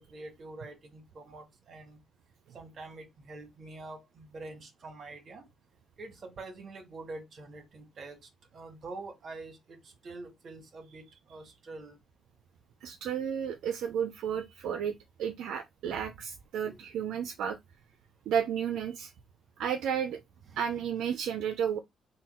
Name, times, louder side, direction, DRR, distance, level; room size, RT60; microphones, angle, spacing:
voice 1, 0.0-2.0 2.5-5.4 6.0-12.0 16.6-16.8, right 2 dB, 55° right, 1.6 m, -46 dB
voice 2, 12.8-14.9 15.2-17.6 18.3-19.1 19.6-20.2 20.6-21.8, right 8 dB, 80° right, 0.5 m, -32 dB
3.8 x 2.3 x 4.3 m
cardioid pair, 90°, 0 cm